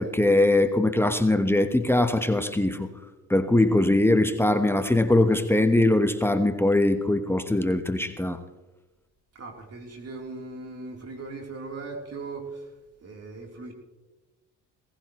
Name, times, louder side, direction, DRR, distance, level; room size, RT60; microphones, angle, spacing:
voice 1, 0.0-2.9 3.3-8.4, left 2 dB, 5° left, 8 dB, 1.2 m, -21 dB
voice 2, 9.3-12.7 13.0-13.7, right 3 dB, 45° right, 0 dB, 3.6 m, -38 dB
17.5 x 16.0 x 3.1 m, 1.1 s
supercardioid pair, 65°, 35 cm